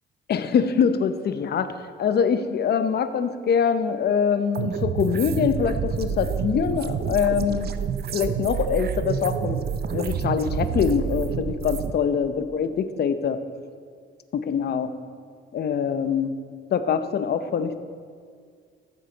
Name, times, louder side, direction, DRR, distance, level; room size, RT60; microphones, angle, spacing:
voice 1, 0.3-1.7 2.0-7.7 8.1-9.6 9.9-13.4 14.3-14.9 15.5-16.4 16.7-17.8, left 7 dB, 55° left, 11 dB, 0.7 m, -24 dB
sound 1, 4.5-11.9, right 7 dB, 50° right, 0.6 m, -28 dB
14.5 x 7.7 x 4.1 m, 2.1 s
cardioid pair, 90°, 20 cm